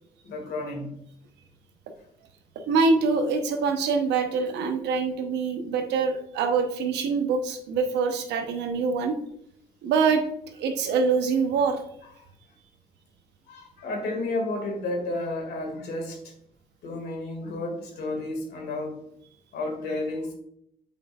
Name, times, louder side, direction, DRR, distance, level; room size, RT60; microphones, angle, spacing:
voice 1, 0.2-0.9 13.5-16.3 16.8-19.1 19.5-20.3, left 2 dB, 75° left, 3 dB, 1.9 m, -32 dB
voice 2, 2.7-9.2 9.8-10.2 10.5-11.8, right 5 dB, 85° right, 5 dB, 0.9 m, -24 dB
7.5 x 5.4 x 2.4 m, 0.72 s
supercardioid pair, 55°, 17 cm